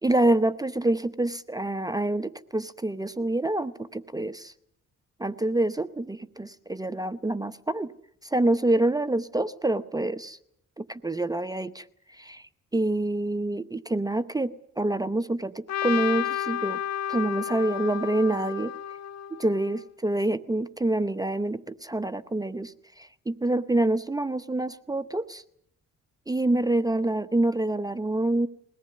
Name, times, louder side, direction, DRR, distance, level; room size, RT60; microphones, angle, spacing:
voice 1, 0.0-4.5 5.2-7.9 8.2-10.4 10.8-12.4 12.7-16.8 17.1-18.7 19.4-25.4 26.3-28.5, right 2 dB, 10° right, 12 dB, 0.8 m, -27 dB
Trumpet, 15.7-19.8, left 10 dB, 60° left, 1.6 m, -32 dB
22.0 x 18.0 x 9.4 m, 0.73 s
cardioid pair, 90°, 30 cm